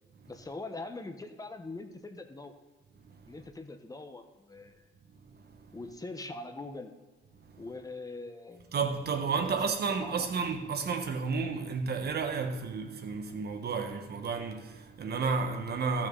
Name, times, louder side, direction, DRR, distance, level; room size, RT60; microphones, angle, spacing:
voice 1, 0.3-2.6 3.3-4.9 5.7-6.9 7.6-8.7 9.3-9.6 10.0-10.3, left 2 dB, 20° left, 1.1 m, -42 dB
voice 2, 5.3-5.7 7.5-7.6 8.7-16.1, right 5 dB, 55° right, 1.4 m, -32 dB
14.5 x 6.4 x 4.0 m
cardioid pair, 90°, 20 cm